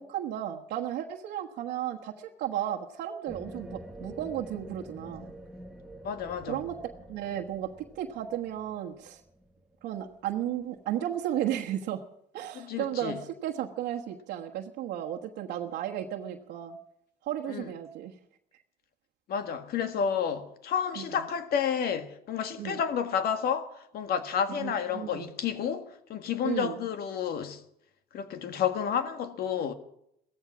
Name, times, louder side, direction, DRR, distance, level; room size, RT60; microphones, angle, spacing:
voice 1, 0.0-5.2 6.5-6.8 7.1-7.7 7.9-9.2 9.8-12.0 12.3-16.8 17.2-18.1 20.9-21.3 22.6-22.8 24.5-25.3 26.4-26.8, right 11 dB, 85° right, 1.3 m, -34 dB
sound 1, 3.3-10.6, right 1 dB, 5° right, 1.3 m, -47 dB
voice 2, 6.0-6.6 12.5-13.2 17.5-17.6 19.3-23.7 23.9-27.6 28.1-29.7, left 7 dB, 65° left, 1.7 m, -30 dB
16.5 x 14.5 x 6.1 m
cardioid pair, 110°, 17 cm